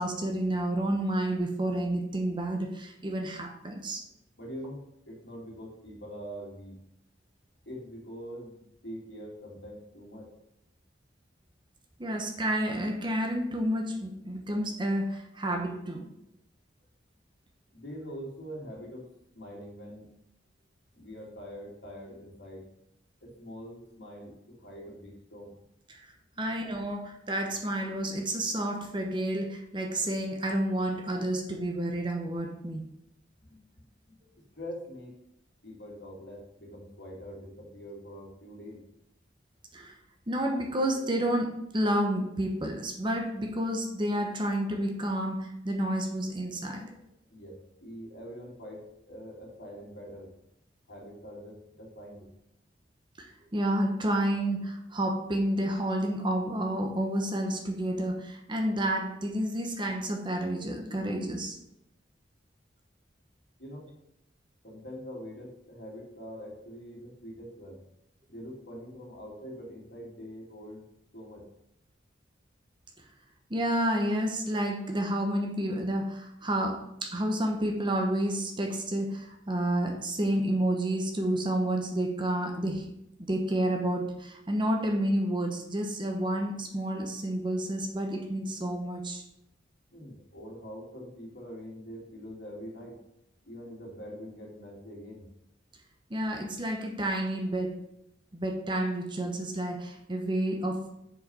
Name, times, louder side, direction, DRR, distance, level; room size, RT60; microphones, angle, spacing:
voice 1, 0.0-4.0 12.0-16.0 25.9-26.0 26.4-32.8 39.7-39.9 40.3-46.9 53.2-61.6 73.5-82.9 83.3-89.2 96.1-97.8 98.3-100.8, right 1 dB, 25° right, 3 dB, 1.0 m, -30 dB
voice 2, 4.4-6.8 7.7-10.3 17.7-19.1 19.3-20.1 20.9-22.7 23.2-25.5 26.3-26.5 33.4-35.2 35.6-38.8 47.3-50.3 50.9-52.3 63.6-63.9 64.6-67.8 68.3-70.8 71.1-71.5 89.9-93.0 93.5-95.3, equal, 70° left, -2 dB, 2.7 m, -44 dB
7.2 x 4.8 x 5.5 m, 0.80 s
head